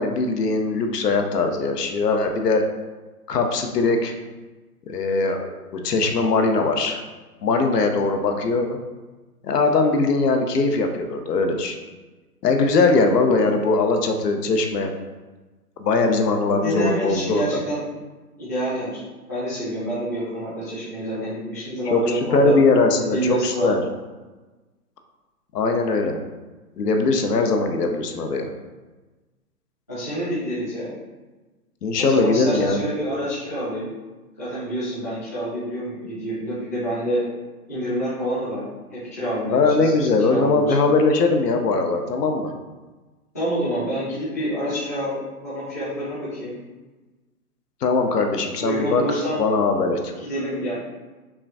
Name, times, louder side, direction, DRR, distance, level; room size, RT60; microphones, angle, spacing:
voice 1, 0.0-2.6 3.3-4.1 4.9-7.0 7.4-8.7 9.4-11.7 12.4-14.9 15.8-17.6 21.9-23.8 25.5-26.2 26.8-28.5 31.8-32.8 39.5-42.5 47.8-49.0 49.4-50.1, left 3 dB, 85° left, 5 dB, 0.7 m, -20 dB
voice 2, 16.6-17.8 18.4-19.0 19.3-22.5 23.0-23.7 29.9-30.9 32.0-33.9 34.4-37.2 37.7-38.6 38.9-40.7 43.3-46.5 48.6-49.4 50.2-50.7, equal, 10° left, -13 dB, 0.5 m, -27 dB
5.6 x 2.3 x 2.6 m, 1.2 s
hypercardioid pair, 160°, 47 cm